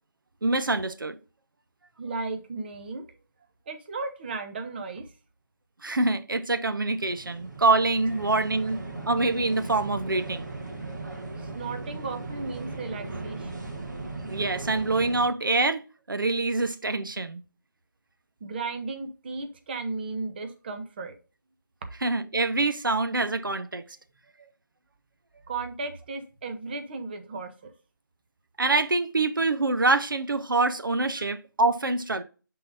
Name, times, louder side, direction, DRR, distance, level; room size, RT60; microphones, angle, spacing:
voice 1, 0.4-1.2 5.8-10.5 14.2-15.8 16.1-17.4 22.0-23.8 28.6-32.2, right 3 dB, 80° right, 0.8 m, -25 dB
voice 2, 2.0-3.0 3.7-5.1 11.4-13.7 18.4-21.1 25.5-27.7, right 3 dB, 30° right, 0.8 m, -35 dB
sound 1, 6.6-15.2, right 3 dB, 60° right, 1.9 m, -38 dB
10.0 x 3.9 x 2.6 m
figure-of-eight pair, 160°, 11 cm